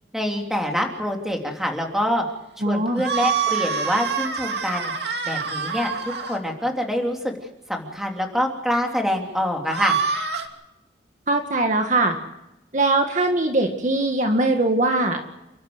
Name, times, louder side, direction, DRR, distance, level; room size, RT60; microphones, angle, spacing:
voice 1, 0.1-2.2 2.6-5.9 6.3-7.4 7.7-10.0, equal, ahead, 1 dB, 3.1 m, -25 dB
voice 2, 2.6-3.0 11.3-12.2 12.7-15.3, right 2 dB, 40° right, 4 dB, 1.9 m, -21 dB
sound 1, 3.0-6.4 9.6-10.5, right 6 dB, 65° right, 2.6 m, -26 dB
29.5 x 12.5 x 7.9 m, 0.93 s
head